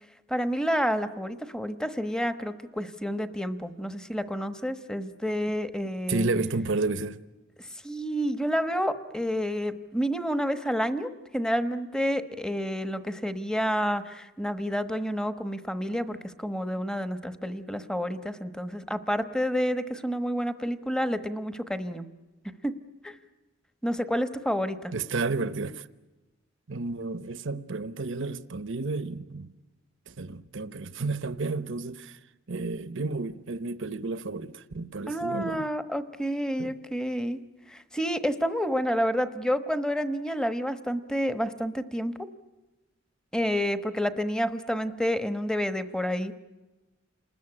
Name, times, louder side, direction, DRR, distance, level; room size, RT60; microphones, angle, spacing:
voice 1, 0.3-6.3 7.6-22.1 22.6-22.7 23.0-23.2 23.8-24.9 35.1-37.4 37.7-42.1 43.3-46.4, equal, 5° left, 1.1 m, -29 dB
voice 2, 6.1-7.2 24.9-25.9 26.7-29.5 30.1-32.2 32.5-35.7 36.6-36.7, right 3 dB, 65° right, 0.9 m, -31 dB
29.5 x 20.5 x 9.9 m
head